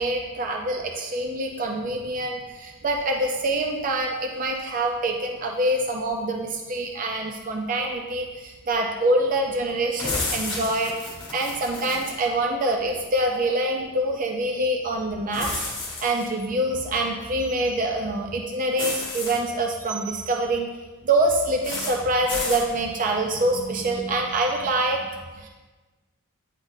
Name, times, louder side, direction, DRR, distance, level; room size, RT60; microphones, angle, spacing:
voice 1, 0.0-10.9 11.3-15.6 16.0-20.7 21.0-25.1 25.4-25.5, right 1 dB, 40° right, 2 dB, 0.4 m, -25 dB
sound 1, 10.0-12.2 15.3-16.3 18.8-19.4 21.6-22.0 22.3-22.7, left 2 dB, 25° left, 1.5 m, -31 dB
9.6 x 4.0 x 2.6 m, 1.3 s
head